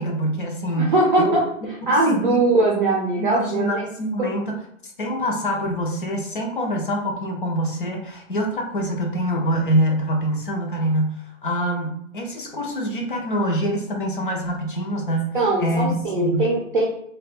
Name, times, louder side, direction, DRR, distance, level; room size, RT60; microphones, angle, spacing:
voice 1, 0.0-1.4 1.8-2.4 3.2-4.5 4.8-16.5, equal, 40° left, 2 dB, 0.5 m, -25 dB
voice 2, 0.8-1.5 1.9-3.9 4.2-4.4 15.3-16.9, right 2 dB, 40° right, -2 dB, 0.6 m, -20 dB
2.5 x 2.2 x 4.0 m, 0.73 s
hypercardioid pair, 170°, 40 cm